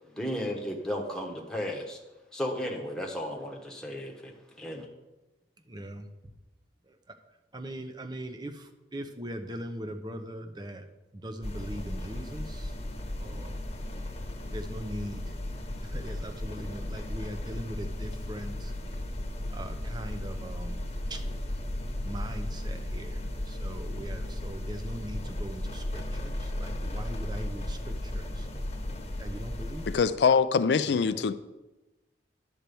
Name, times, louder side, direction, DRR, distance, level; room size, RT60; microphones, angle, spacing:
voice 1, 0.2-2.0 2.3-4.9, equal, 5° left, 0 dB, 1.2 m, -34 dB
voice 2, 5.7-6.3 6.8-7.2 7.5-10.9 11.1-12.8 13.2-13.6 14.5-15.4 15.8-18.7 19.5-20.8 21.1-21.3 22.0-28.5 29.2-30.0 30.9-31.2, right 1 dB, 25° right, 6 dB, 0.7 m, -40 dB
sound 1, 11.4-30.0, left 1 dB, 35° left, 1.1 m, -35 dB
voice 3, 29.9-31.3, left 5 dB, 70° left, 12 dB, 0.4 m, -23 dB
10.5 x 4.5 x 6.9 m, 1.1 s
head